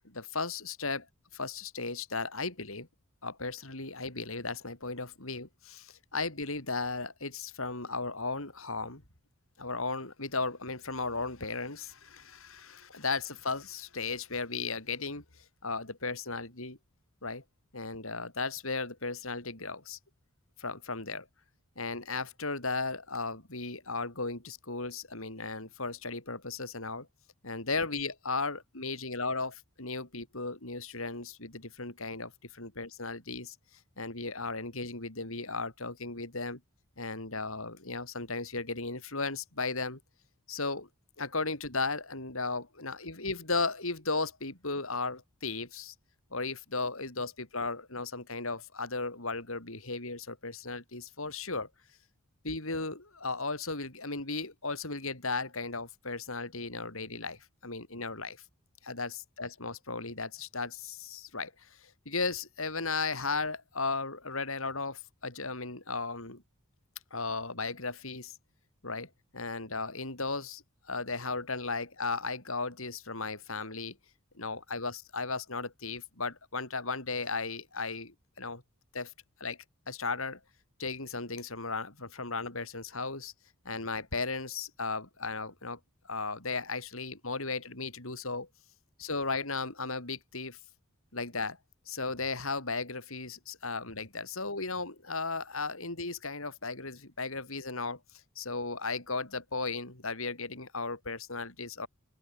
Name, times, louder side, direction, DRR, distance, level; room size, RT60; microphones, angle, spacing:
voice 1, 0.0-1.1 1.3-2.9 3.2-9.0 9.6-16.8 17.2-17.4 17.7-20.0 20.6-21.3 21.8-27.1 27.4-33.6 34.0-36.6 37.0-40.0 40.5-40.9 41.2-45.9 46.3-51.7 52.4-58.4 58.8-66.4 67.1-68.4 68.8-74.0 74.3-78.6 78.9-79.1 79.4-79.6 79.9-80.4 80.8-83.3 83.7-85.8 86.0-88.5 89.0-90.6 91.1-91.6 91.9-98.0 98.4-101.9, left 3 dB, 70° left, 5.5 m, -36 dB
open air
head